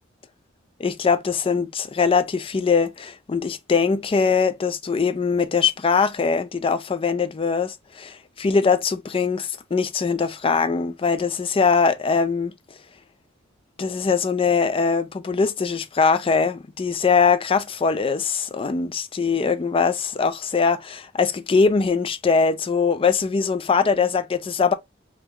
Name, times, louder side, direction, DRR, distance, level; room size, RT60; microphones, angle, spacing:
voice 1, 0.8-12.5 13.8-24.7, left 5 dB, 30° left, 0.4 m, -22 dB
3.6 x 2.3 x 2.8 m
head